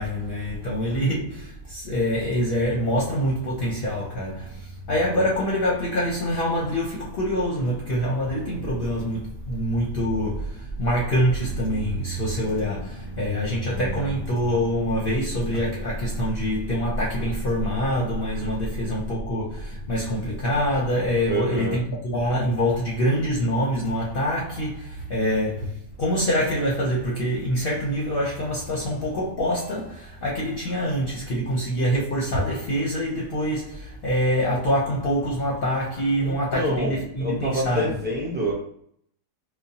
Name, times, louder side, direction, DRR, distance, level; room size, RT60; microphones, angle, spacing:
voice 1, 0.0-38.0, equal, 55° left, 0.6 m, -25 dB
voice 2, 21.2-21.9 36.2-38.5, equal, 15° right, 0.4 m, -27 dB
5.0 x 2.1 x 2.8 m
omnidirectional pair, 1.7 m